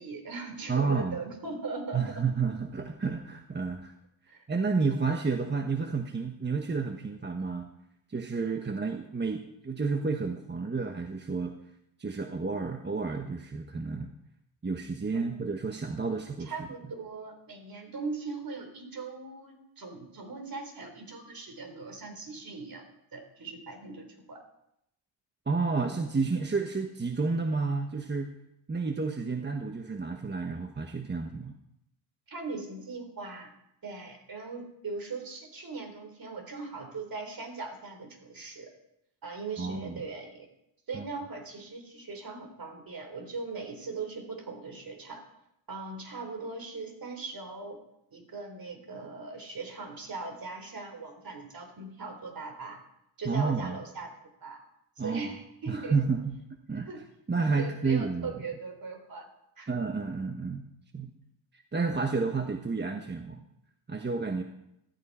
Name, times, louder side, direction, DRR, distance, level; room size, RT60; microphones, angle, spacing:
voice 1, 0.0-2.2 4.3-4.4 15.1-15.6 16.4-22.8 23.1-24.4 32.3-33.5 33.8-38.7 39.2-40.5 40.9-45.2 45.7-47.8 48.1-52.8 53.2-54.1 54.4-54.6 55.0-56.0 56.9-57.0 57.6-59.3 59.6-59.7, right 4 dB, 50° right, 4 dB, 4.1 m, -40 dB
voice 2, 0.7-1.2 1.9-3.9 4.5-7.7 8.1-11.5 12.0-14.1 14.6-16.5 25.5-28.3 28.7-31.6 39.6-40.0 40.9-41.0 53.2-53.8 55.0-55.3 55.7-56.3 56.7-56.9 57.3-58.3 59.7-60.6 60.9-61.1 61.5-63.4 63.9-64.4, right 4 dB, 25° right, 5 dB, 1.1 m, -30 dB
15.0 x 14.5 x 4.3 m, 0.81 s
cardioid pair, 85°, 45 cm